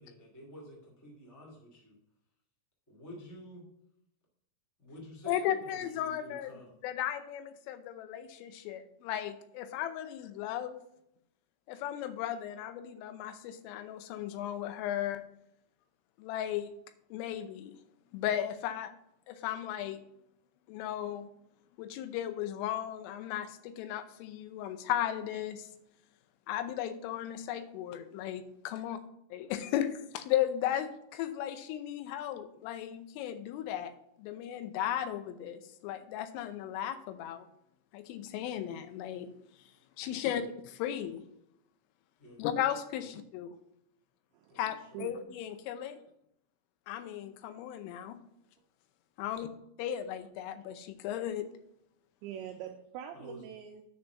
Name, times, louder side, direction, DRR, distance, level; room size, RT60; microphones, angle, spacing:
voice 1, 0.0-1.9 2.9-3.6 4.8-6.7 40.0-40.2 42.2-42.4 44.5-45.0 49.2-49.4 53.1-53.4, equal, 30° left, -3 dB, 0.3 m, -50 dB
voice 2, 5.3-6.5 6.8-10.8 11.7-15.2 16.2-16.7 17.1-17.7 18.1-18.9 19.3-20.0 20.7-21.3 21.8-25.7 26.5-29.0 29.3-33.9 34.2-37.5 37.9-39.3 40.0-41.2 42.4-43.5 44.6-46.0 46.9-48.2 49.2-49.5 49.8-51.5, left 11 dB, 80° left, 10 dB, 3.2 m, -35 dB
voice 3, 52.2-53.8, right 9 dB, 85° right, 3 dB, 2.6 m, -43 dB
9.6 x 4.3 x 6.9 m, 0.77 s
omnidirectional pair, 5.9 m